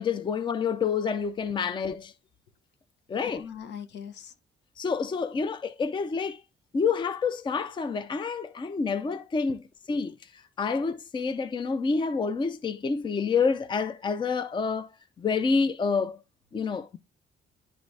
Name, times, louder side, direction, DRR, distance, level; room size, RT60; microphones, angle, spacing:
voice 1, 0.0-2.1 3.1-3.4 4.8-6.4 6.7-9.6 9.9-10.2 10.6-14.9 15.2-16.2 16.5-17.0, left 5 dB, 25° left, 0.5 m, -28 dB
voice 2, 3.2-4.3 9.9-10.1, left 8 dB, 70° left, 1.2 m, -42 dB
10.5 x 3.9 x 3.3 m
cardioid pair, 145°, 18 cm